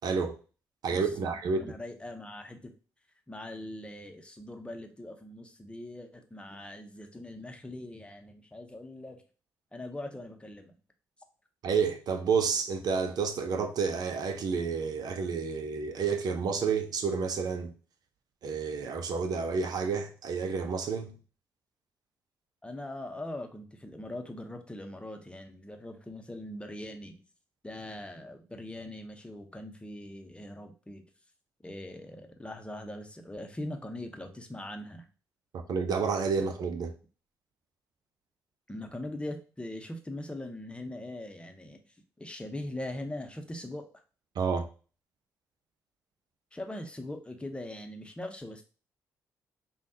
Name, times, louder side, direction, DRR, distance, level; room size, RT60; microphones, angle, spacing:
voice 1, 0.0-0.4 0.8-1.7 11.6-17.7 18.4-21.1 35.5-36.9 44.4-44.7, right 5 dB, 60° right, 0.6 m, -30 dB
voice 2, 0.9-2.7 3.3-9.2 9.7-10.7 22.6-27.2 27.6-31.0 31.6-35.1 38.7-41.8 42.2-43.9 46.5-48.6, left 1 dB, 15° left, 0.8 m, -41 dB
5.3 x 2.3 x 2.7 m
hypercardioid pair, 45°, 8 cm